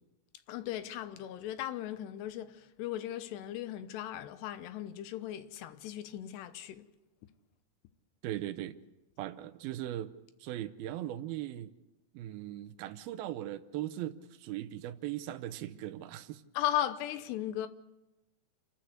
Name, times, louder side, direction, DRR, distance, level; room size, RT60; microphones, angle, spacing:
voice 1, 0.5-6.9 16.5-17.7, left 12 dB, 90° left, 3.1 m, -37 dB
voice 2, 8.2-8.8 9.2-11.7 12.1-16.4, right 13 dB, 75° right, 2.6 m, -39 dB
28.0 x 13.0 x 8.0 m
omnidirectional pair, 4.7 m